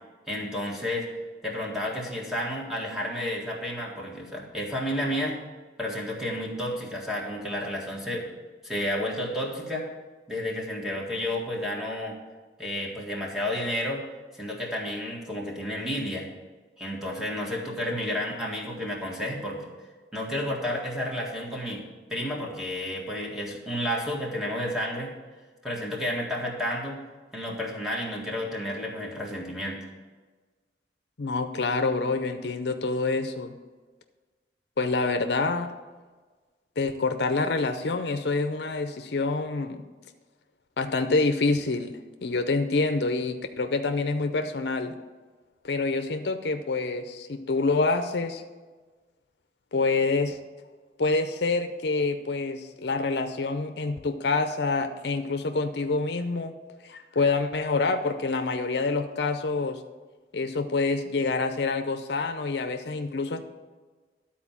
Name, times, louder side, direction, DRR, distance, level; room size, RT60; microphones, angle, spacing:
voice 1, 0.3-1.1 1.4-5.4 5.8-8.3 8.6-9.9 10.3-12.2 12.6-14.0 14.3-16.3 16.8-19.6 20.1-21.8 22.1-25.1 25.6-27.0 27.3-29.8, left 1 dB, ahead, -3 dB, 1.7 m, -31 dB
voice 2, 31.2-33.5 34.8-35.7 36.8-39.8 40.8-45.0 45.6-48.4 49.7-50.4 51.0-56.5 56.8-59.8 60.3-63.4, left 3 dB, 65° left, 7 dB, 0.6 m, -27 dB
12.5 x 4.4 x 7.2 m, 1.4 s
head